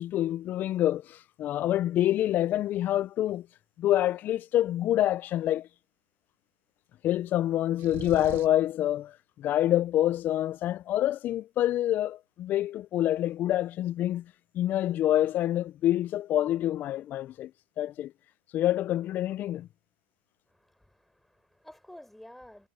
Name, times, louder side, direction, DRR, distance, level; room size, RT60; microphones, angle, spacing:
voice 1, 0.0-3.5 3.8-5.7 7.0-14.2 14.5-17.5 17.8-18.1 18.5-19.7, left 13 dB, 30° left, 0.4 m, -27 dB
sound 1, 7.8-8.7, right 16 dB, 35° right, 0.9 m, -41 dB
voice 2, 20.5-22.7, left 1 dB, ahead, 4.4 m, -51 dB
supercardioid pair, 140°, 6 cm